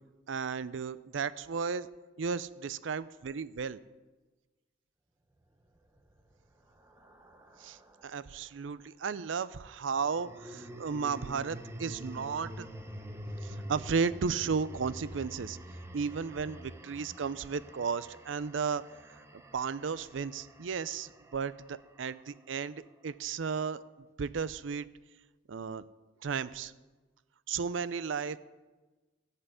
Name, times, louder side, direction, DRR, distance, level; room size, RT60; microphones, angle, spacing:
voice 1, 0.3-1.9 2.2-3.8 7.6-12.7 13.4-15.6 15.9-18.8 19.1-23.8 24.2-24.9 25.5-25.8 26.2-26.7 27.5-28.4, right 5 dB, 75° right, 17 dB, 0.5 m, -34 dB
sound 1, 5.8-8.3 9.9-22.2, equal, 15° right, 1.0 m, -47 dB
15.0 x 5.7 x 8.2 m, 1.2 s
head